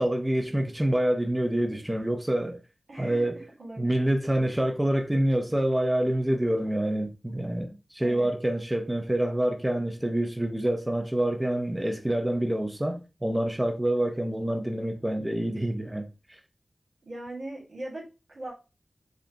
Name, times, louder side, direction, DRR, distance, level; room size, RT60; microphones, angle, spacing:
voice 1, 0.0-2.6 3.0-3.4 3.8-16.1, right 1 dB, 15° right, 0.5 m, -27 dB
voice 2, 2.9-3.2 3.6-4.1 4.4-4.6 8.0-8.3 17.0-18.5, right 1 dB, 85° right, 1.5 m, -40 dB
4.9 x 2.3 x 2.7 m
wide cardioid pair, 55°, 0 cm